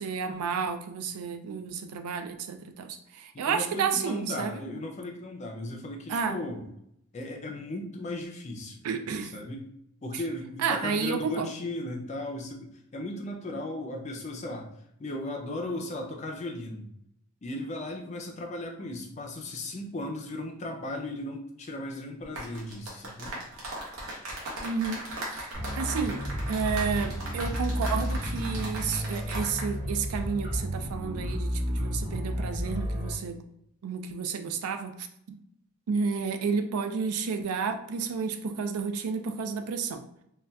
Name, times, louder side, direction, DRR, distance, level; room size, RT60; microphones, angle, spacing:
voice 1, 0.0-4.8 6.1-6.4 8.8-9.3 10.6-11.5 24.6-25.0 25.3-26.2 26.5-33.4 33.8-35.4 35.9-40.0, right 5 dB, 85° right, 8 dB, 0.4 m, -31 dB
voice 2, 3.3-6.6 7.1-8.8 9.3-9.7 10.0-14.7 15.0-16.9 17.4-23.4, left 1 dB, 30° left, 2 dB, 0.4 m, -36 dB
sound 1, 22.2-29.7 30.0-30.2, right 1 dB, 70° right, 0.9 m, -38 dB
sound 2, 25.5-33.1, equal, 25° right, 1.3 m, -32 dB
3.9 x 2.2 x 2.2 m, 0.75 s
head